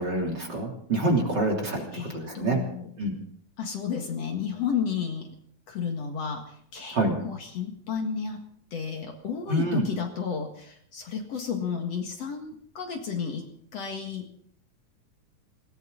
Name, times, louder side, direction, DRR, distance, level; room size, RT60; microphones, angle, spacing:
voice 1, 0.0-2.6 3.0-3.1 6.9-7.2 9.5-9.8, right 2 dB, 35° right, 0 dB, 3.4 m, -26 dB
voice 2, 1.9-2.9 3.6-5.3 5.7-8.4 8.7-13.5 13.7-14.3, left 6 dB, 55° left, 3 dB, 2.6 m, -32 dB
19.5 x 18.0 x 3.9 m, 0.63 s
omnidirectional pair, 3.7 m